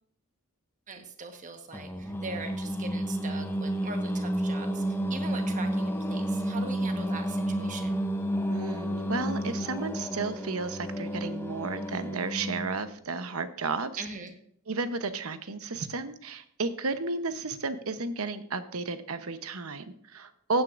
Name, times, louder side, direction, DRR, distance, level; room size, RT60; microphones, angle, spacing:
voice 1, 0.9-7.9 14.0-14.3, right 3 dB, 35° right, 5 dB, 1.3 m, -41 dB
Singing, 1.7-12.9, equal, 10° left, 0.7 m, -31 dB
voice 2, 8.5-14.0 14.7-20.6, right 3 dB, 75° right, 10 dB, 1.0 m, -33 dB
15.0 x 9.5 x 2.6 m, 0.68 s
head